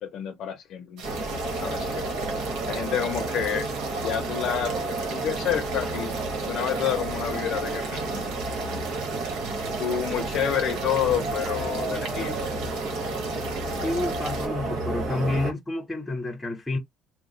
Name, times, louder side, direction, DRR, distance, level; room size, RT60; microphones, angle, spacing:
voice 1, 0.0-2.1 2.7-3.7 4.0-8.2 9.8-12.5, left 9 dB, 50° left, 0.7 m, -29 dB
sound 1, 1.0-15.5, right 2 dB, 45° right, 0.9 m, -31 dB
sound 2, 1.0-14.5, right 5 dB, 75° right, 1.3 m, -40 dB
voice 2, 13.8-16.8, left 2 dB, 5° left, 0.8 m, -29 dB
3.0 x 2.2 x 3.9 m
cardioid pair, 170°, 0 cm